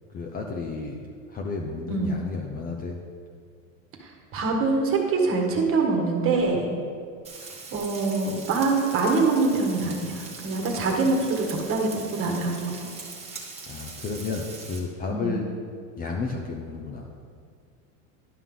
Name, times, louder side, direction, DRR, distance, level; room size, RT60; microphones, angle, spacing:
voice 1, 0.1-1.0 1.3-3.0 13.2-13.4 13.6-15.5 16.0-17.1, left 4 dB, 20° left, 1 dB, 0.5 m, -32 dB
voice 2, 4.0-6.7 7.7-12.7 15.1-15.4, right 3 dB, 35° right, 1 dB, 1.4 m, -24 dB
Frying (food), 7.2-14.8, right 4 dB, 15° right, 1.3 m, -41 dB
11.0 x 5.5 x 3.8 m, 2.1 s
supercardioid pair, 130°, 40 cm